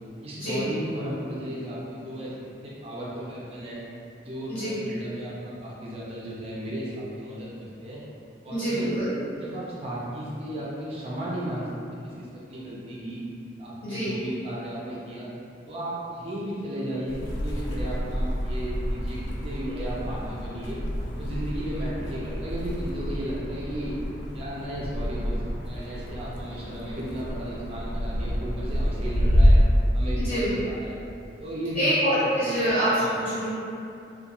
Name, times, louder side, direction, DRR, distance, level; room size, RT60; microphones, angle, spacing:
voice 1, 0.2-2.3 2.6-3.8 4.2-8.0 8.4-8.9 9.4-11.7 12.0-13.2 13.6-15.3 15.7-20.8 21.2-23.9 24.3-29.5 29.9-31.0 31.4-31.8 32.1-32.5 33.0-33.2, right 1 dB, 30° right, -6 dB, 0.4 m, -35 dB
voice 2, 8.5-9.1 13.8-14.1 30.1-30.5 31.7-33.5, equal, 40° left, -13 dB, 0.7 m, -25 dB
sound 1, 17.1-29.7, equal, 90° left, 0.4 m, -27 dB
2.3 x 2.2 x 2.8 m, 2.6 s
head